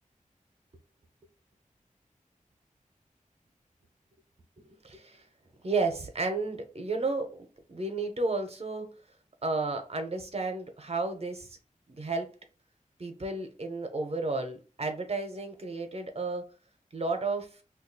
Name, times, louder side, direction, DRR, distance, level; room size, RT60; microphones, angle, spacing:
voice 1, 4.6-5.2 5.6-7.3 7.7-8.9 9.4-11.5 11.9-12.3 13.0-16.4 16.9-17.6, right 3 dB, 50° right, 0.8 m, -32 dB
2.6 x 2.3 x 4.0 m
wide cardioid pair, 75°, 14 cm